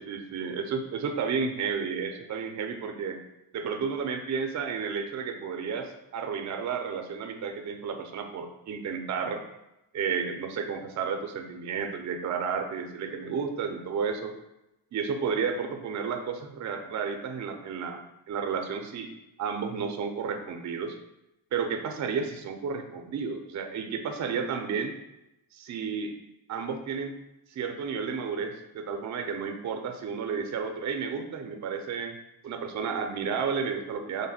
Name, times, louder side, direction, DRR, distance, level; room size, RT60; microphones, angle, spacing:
voice 1, 0.0-3.2 3.5-9.4 9.9-14.3 14.9-18.0 18.3-19.1 19.4-21.0 21.5-24.9 25.5-26.1 26.5-27.2 27.5-32.2 32.4-34.3, right 6 dB, 40° right, 5 dB, 0.4 m, -32 dB
3.2 x 2.1 x 4.1 m, 0.89 s
cardioid pair, 85°, 46 cm